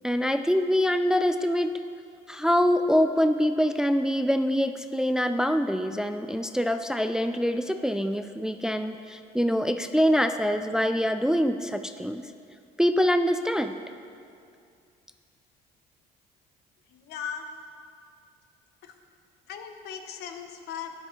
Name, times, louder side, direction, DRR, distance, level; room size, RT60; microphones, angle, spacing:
voice 1, 0.0-1.7 2.3-12.3 12.8-13.7, equal, 5° right, 8 dB, 0.3 m, -24 dB
voice 2, 16.9-17.5 19.5-20.9, left 7 dB, 75° left, 6 dB, 0.9 m, -37 dB
11.5 x 9.7 x 3.2 m, 2.4 s
cardioid pair, 110°, 17 cm